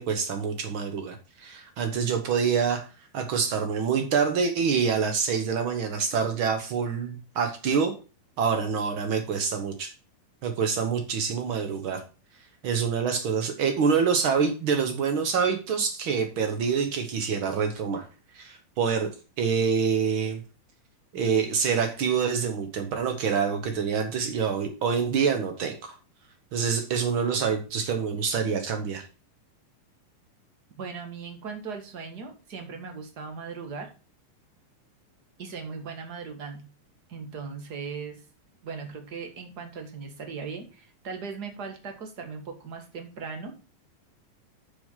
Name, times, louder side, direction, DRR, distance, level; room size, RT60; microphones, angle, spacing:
voice 1, 0.0-2.9 3.1-7.9 8.4-9.9 10.4-12.0 12.6-18.1 18.3-19.1 19.4-20.4 21.1-26.0 26.5-29.0, right 6 dB, 85° right, 6 dB, 1.1 m, -26 dB
voice 2, 30.8-33.9 35.4-36.6 37.1-38.3 38.6-43.6, right 5 dB, 40° right, 5 dB, 1.5 m, -38 dB
7.0 x 7.0 x 5.6 m, 0.33 s
omnidirectional pair, 4.1 m